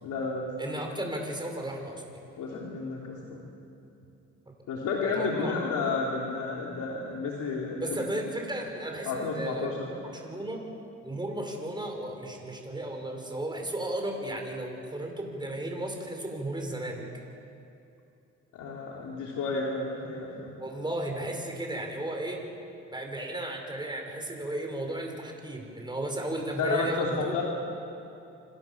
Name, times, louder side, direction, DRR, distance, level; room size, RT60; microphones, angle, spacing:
voice 1, 0.0-0.8 2.4-3.5 4.7-8.0 9.0-10.1 18.5-20.5 26.6-27.4, left 4 dB, 80° left, -2 dB, 3.2 m, -31 dB
voice 2, 0.6-2.2 5.0-5.6 7.8-9.7 10.0-10.6 11.0-17.0 20.6-22.4 22.9-27.4, right 1 dB, 15° right, 2 dB, 5.6 m, -34 dB
26.5 x 26.5 x 7.2 m, 2.8 s
cardioid pair, 90°, 30 cm